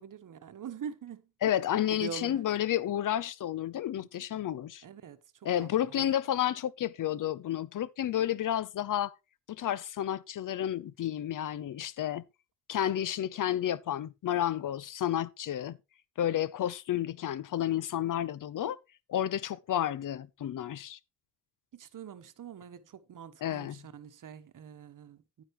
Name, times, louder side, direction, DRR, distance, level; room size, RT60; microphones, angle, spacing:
voice 1, 0.0-1.3 2.0-2.5 4.0-4.2 4.8-6.1 21.7-25.4, right 7 dB, 50° right, 1.2 m, -44 dB
voice 2, 1.4-4.8 5.4-9.1 9.5-12.2 12.7-15.8 16.2-18.8 19.1-21.0 23.4-23.8, left 11 dB, 55° left, 0.7 m, -31 dB
10.0 x 9.3 x 3.1 m
supercardioid pair, 60°, 39 cm